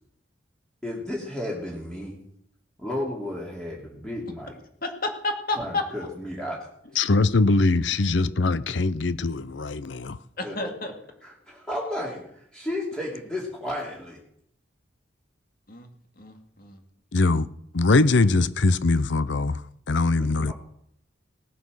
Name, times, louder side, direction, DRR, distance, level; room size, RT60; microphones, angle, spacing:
voice 1, 0.8-2.2 2.8-4.6 5.6-6.6 10.4-10.9 11.2-14.2 20.1-20.5, left 1 dB, 5° left, 2.9 m, -33 dB
voice 2, 4.8-5.8 10.4-10.9 15.7-15.9 16.2-16.8, left 2 dB, 50° left, 2.2 m, -30 dB
voice 3, 7.0-10.2 17.1-17.5 17.7-19.6 19.9-20.5, left 3 dB, 70° left, 0.7 m, -22 dB
18.0 x 9.3 x 6.4 m
head